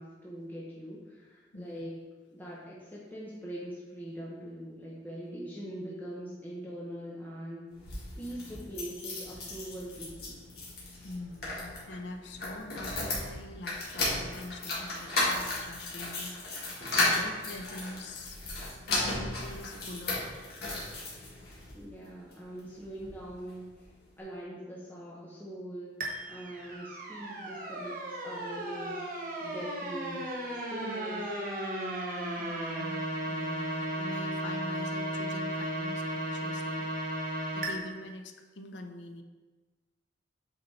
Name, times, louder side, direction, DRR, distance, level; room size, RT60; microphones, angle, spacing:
voice 1, 0.0-1.9 2.3-7.7 8.2-10.4 21.7-25.9 26.3-29.0 29.4-31.3, equal, 10° left, -6 dB, 1.0 m, -42 dB
voice 2, 1.5-1.8 11.0-18.4 18.9-20.4 32.4-36.9 37.5-39.2, left 2 dB, 80° left, 6 dB, 0.7 m, -44 dB
sound 1, 7.7-21.7 22.3-23.2 23.5-23.6 23.8-23.9, left 2 dB, 60° left, 2.0 m, -35 dB
sound 2, 26.0-37.7, right 1 dB, 50° right, 1.2 m, -35 dB
8.1 x 4.2 x 4.2 m, 1.3 s
head